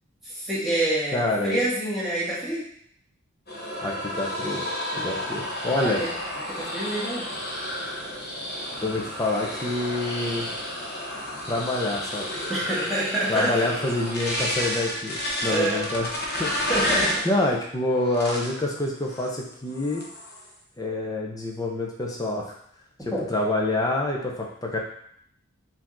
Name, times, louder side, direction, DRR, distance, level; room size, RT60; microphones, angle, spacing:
voice 1, 0.2-2.7 4.9-5.3 5.8-6.1 6.5-7.3 12.5-13.5 15.4-15.8 16.7-17.3 23.1-23.3, right 1 dB, ahead, -10 dB, 1.7 m, -27 dB
voice 2, 1.1-1.6 3.8-4.6 5.0-6.0 8.8-10.5 11.5-12.5 13.3-16.1 16.4-16.5 16.9-20.0 20.8-22.6 23.3-24.8, left 2 dB, 20° left, -1 dB, 0.7 m, -27 dB
sound 1, 3.5-17.3 18.0-18.6 19.1-19.4 19.7-20.4, left 1 dB, 50° left, 0.9 m, -31 dB
4.9 x 2.8 x 3.7 m, 0.65 s
head